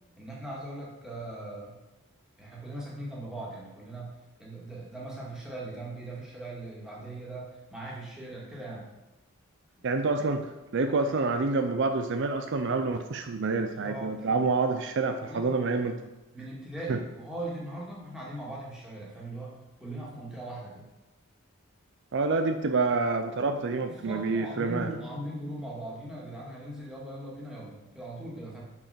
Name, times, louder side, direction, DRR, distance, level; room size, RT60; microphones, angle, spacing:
voice 1, 0.2-1.8 2.4-8.9 13.5-14.5 15.2-15.5 16.3-20.8 23.8-28.6, right 1 dB, 5° right, -6 dB, 2.1 m, -40 dB
voice 2, 9.8-16.0 16.9-17.0 22.1-24.9, right 3 dB, 55° right, 7 dB, 0.5 m, -27 dB
6.6 x 6.0 x 5.7 m, 1.0 s
head